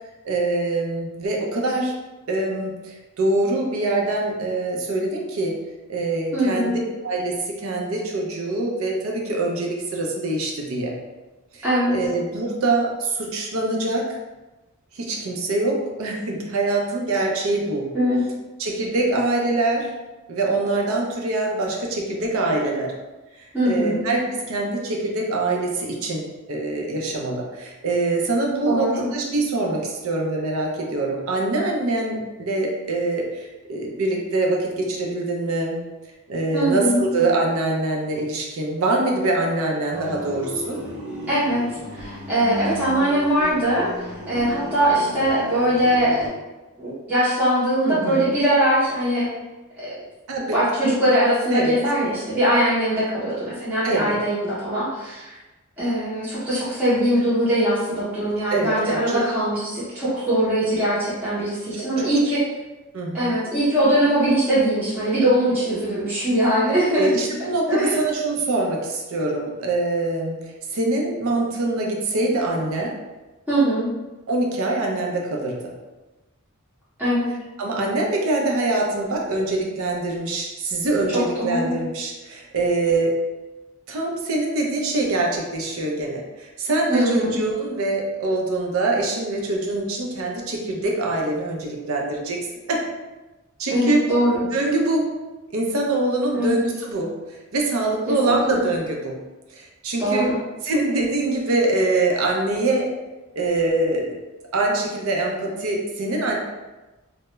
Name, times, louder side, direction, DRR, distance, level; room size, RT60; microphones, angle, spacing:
voice 1, 0.2-1.9 2.3-5.6 5.9-10.9 11.5-11.6 11.9-14.1 14.9-17.9 18.6-19.9 20.3-22.9 23.4-35.8 36.3-40.8 47.8-48.3 50.3-50.6 51.5-51.8 53.8-54.2 58.5-59.2 61.7-62.1 62.9-63.3 67.0-72.9 74.3-75.7 77.6-83.2 83.9-92.4 92.7-92.8 93.6-94.0 94.5-95.1 95.5-97.2 97.5-99.2 99.5-100.3 100.6-102.9 103.4-104.2 104.5-106.4, right 2 dB, 70° right, 0 dB, 0.5 m, -24 dB
voice 2, 6.3-6.7 11.6-12.0 17.9-18.2 23.5-24.0 28.7-29.1 36.5-37.0 41.3-46.2 46.8-49.3 49.8-49.9 50.5-55.4 55.8-62.4 63.1-67.1 67.7-68.0 73.5-73.9 77.0-77.3 81.1-81.8 86.9-87.4 93.7-94.4 96.3-96.6 98.1-98.6 100.0-100.4, right 1 dB, 10° right, -12 dB, 0.6 m, -21 dB
sound 1, 39.9-46.3, equal, 50° right, 1.0 m, -34 dB
2.2 x 2.0 x 3.0 m, 1.1 s
head